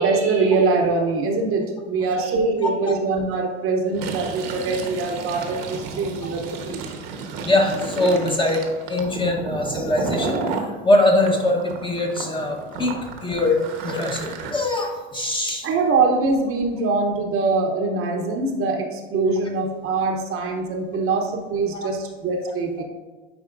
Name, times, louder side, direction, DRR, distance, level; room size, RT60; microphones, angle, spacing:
voice 1, 0.0-6.9 15.6-22.8, right 3 dB, 40° right, 3 dB, 1.0 m, -23 dB
Fill (with liquid), 3.9-10.7 11.2-14.5, right 4 dB, 65° right, 1.2 m, -32 dB
voice 2, 7.4-8.6 8.9-12.9 13.2-15.7 21.7-21.9 22.8-22.9, left 1 dB, 15° left, 1 dB, 1.0 m, -22 dB
9.8 x 4.1 x 2.5 m, 1.3 s
hypercardioid pair, 95°, 34 cm